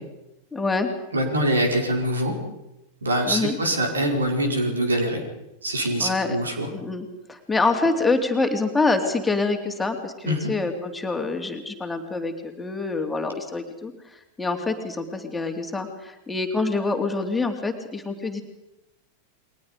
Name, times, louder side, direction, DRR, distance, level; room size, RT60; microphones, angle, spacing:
voice 1, 0.5-0.9 3.2-3.5 6.0-6.4 6.7-18.4, left 3 dB, 10° left, 4 dB, 2.9 m, -26 dB
voice 2, 1.1-2.3 3.0-5.2 5.6-6.7 10.2-10.5, right 1 dB, 75° right, 3 dB, 4.8 m, -24 dB
29.5 x 22.5 x 5.2 m, 0.92 s
figure-of-eight pair, 90°, 0 cm